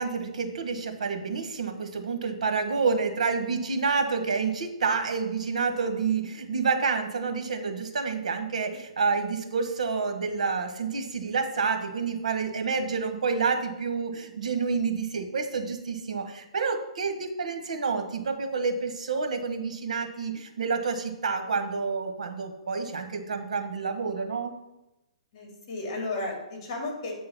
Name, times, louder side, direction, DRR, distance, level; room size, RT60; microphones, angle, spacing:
voice 1, 0.0-24.5, right 5 dB, 85° right, 6 dB, 1.3 m, -28 dB
voice 2, 25.3-27.1, left 2 dB, 45° left, 0 dB, 2.3 m, -33 dB
8.4 x 3.8 x 5.8 m, 0.96 s
hypercardioid pair, 150°, 4 cm